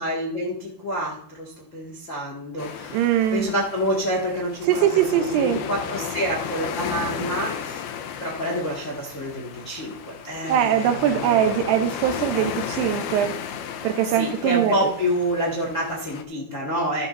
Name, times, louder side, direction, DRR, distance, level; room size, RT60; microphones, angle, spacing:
voice 1, 0.0-3.0 3.3-7.9 8.2-11.5 12.3-12.5 14.2-17.1, equal, 55° left, 0.8 m, -28 dB
sound 1, 2.6-16.2, left 8 dB, 80° left, 2.5 m, -34 dB
voice 2, 2.9-3.5 4.7-5.6 10.5-13.4 13.8-14.9, right 10 dB, 80° right, 2.8 m, -22 dB
14.5 x 12.5 x 2.6 m
omnidirectional pair, 4.8 m